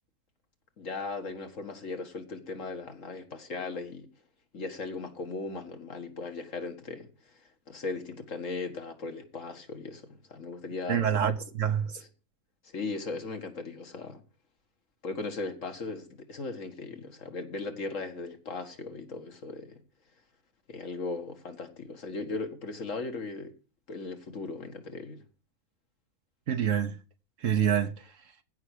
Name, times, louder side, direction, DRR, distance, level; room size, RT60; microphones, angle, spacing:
voice 1, 0.8-4.1 4.5-11.2 12.6-14.2 15.0-19.8 20.7-23.5 23.9-25.2, left 3 dB, 65° left, 2.1 m, -38 dB
voice 2, 10.9-12.0 26.5-27.0 27.4-28.0, right 9 dB, 70° right, 1.3 m, -27 dB
15.5 x 5.9 x 6.5 m
omnidirectional pair, 1.4 m